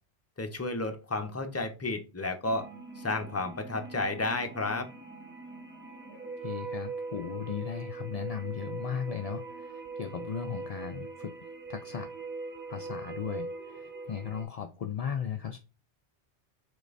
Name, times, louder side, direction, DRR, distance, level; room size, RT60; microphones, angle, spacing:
voice 1, 0.4-2.6 3.0-4.9, left 2 dB, 15° left, 0.6 m, -32 dB
sound 1, 2.4-14.4, right 3 dB, 10° right, 0.8 m, -41 dB
voice 2, 6.4-11.3 11.7-12.1 12.7-15.6, left 8 dB, 60° left, 0.4 m, -36 dB
5.2 x 3.8 x 2.5 m
omnidirectional pair, 1.1 m